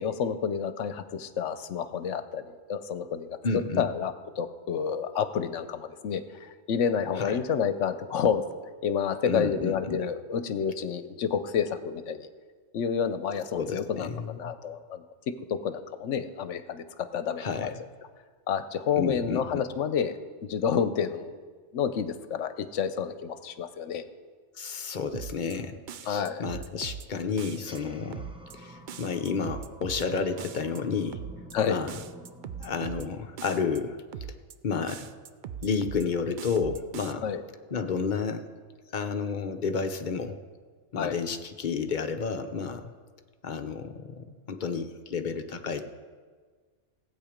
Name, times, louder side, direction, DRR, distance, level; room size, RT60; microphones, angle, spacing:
voice 1, 0.0-3.4 3.8-8.4 8.8-12.3 12.7-17.7 18.5-20.1 20.4-21.4 21.7-24.0 26.1-26.4 31.5-31.8 37.2-37.4 41.0-41.2, left 7 dB, 75° left, 11 dB, 1.0 m, -29 dB
voice 2, 3.4-3.9 7.2-7.4 9.3-10.0 13.5-14.5 17.4-17.7 19.0-19.6 24.6-31.2 31.6-32.0 32.6-34.0 34.6-35.1 35.6-37.3 37.7-38.5 38.9-40.4 40.9-42.9 43.4-45.8, left 5 dB, 45° left, 7 dB, 0.8 m, -31 dB
sound 1, 25.1-25.5 25.9-27.1 27.4-27.8 28.1-28.5 28.9-30.1 30.4-30.8 31.1-31.5 31.9-33.1 33.4-33.8 34.1-34.5 34.9-36.1 36.4-37.1, right 8 dB, 65° right, 0.5 m, -40 dB
sound 2, 27.5-34.2, right 1 dB, 5° right, 0.6 m, -50 dB
16.0 x 8.3 x 5.1 m, 1.6 s
omnidirectional pair, 1.3 m